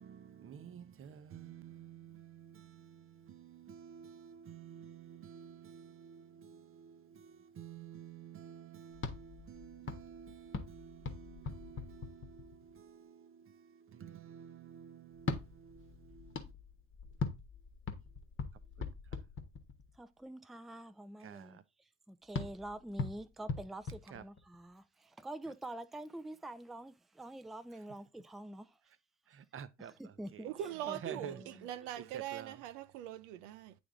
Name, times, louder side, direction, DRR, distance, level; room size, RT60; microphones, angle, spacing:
voice 1, 0.0-16.5 18.8-18.9 21.2-21.6 24.1-24.2 29.3-29.9 30.3-30.4 31.0-31.4 32.1-32.5, right 8 dB, 35° right, 0.7 m, -51 dB
sound 1, 8.9-12.8 15.1-20.0 22.3-24.8, left 4 dB, 30° left, 1.1 m, -42 dB
voice 2, 19.9-28.8 29.8-30.5 30.8-31.7, right 1 dB, ahead, 0.5 m, -47 dB
voice 3, 30.4-33.7, right 11 dB, 80° right, 0.7 m, -42 dB
8.7 x 3.4 x 3.7 m
hypercardioid pair, 65°, 37 cm